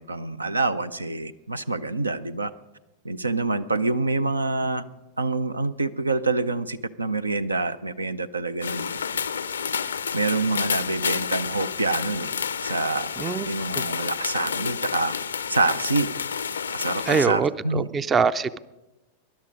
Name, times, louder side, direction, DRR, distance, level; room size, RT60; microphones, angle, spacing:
voice 1, 0.0-2.5 3.0-4.8 5.2-9.3 10.1-12.3 12.6-13.1 13.5-15.1 15.5-16.1 16.7-17.9, right 3 dB, 80° right, 15 dB, 0.5 m, -26 dB
sound 1, 8.6-17.3, left 7 dB, 70° left, 0.5 m, -30 dB
voice 2, 17.1-18.6, right 5 dB, 20° right, 17 dB, 0.5 m, -23 dB
19.5 x 11.5 x 5.2 m, 1.0 s
figure-of-eight pair, 90°, 0 cm